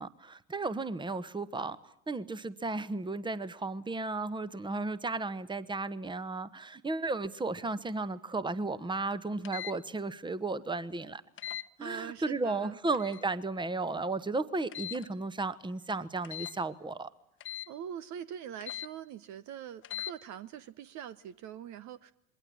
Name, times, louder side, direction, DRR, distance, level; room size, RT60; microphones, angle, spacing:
voice 1, 0.0-1.8 2.1-11.2 11.8-17.1, right 3 dB, 10° right, 16 dB, 1.3 m, -34 dB
sound 1, 9.4-9.8 11.4-11.7 12.9-13.2 14.7-15.1 16.2-16.6 17.4-17.7 18.6-18.9 19.8-20.1, left 11 dB, 30° left, 1.2 m, -40 dB
voice 2, 11.8-12.8 17.7-22.1, right 9 dB, 45° right, 14 dB, 1.0 m, -43 dB
27.5 x 22.0 x 8.7 m, 0.69 s
figure-of-eight pair, 65°, 40 cm